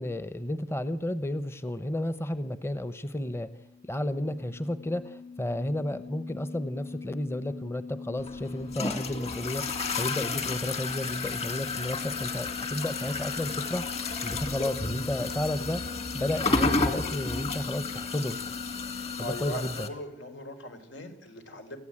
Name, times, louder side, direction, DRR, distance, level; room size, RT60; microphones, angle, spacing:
voice 1, 0.0-3.5 3.9-13.9 14.2-15.8 16.1-18.4 19.2-19.7, left 1 dB, 15° left, 12 dB, 0.8 m, -32 dB
sound 1, 3.1-19.3, left 5 dB, 70° left, 2.6 m, -42 dB
sound 2, 8.2-19.9, left 3 dB, 35° left, 2.2 m, -32 dB
voice 2, 19.0-21.8, equal, 90° left, 7 dB, 4.2 m, -40 dB
28.5 x 15.0 x 8.7 m, 0.91 s
head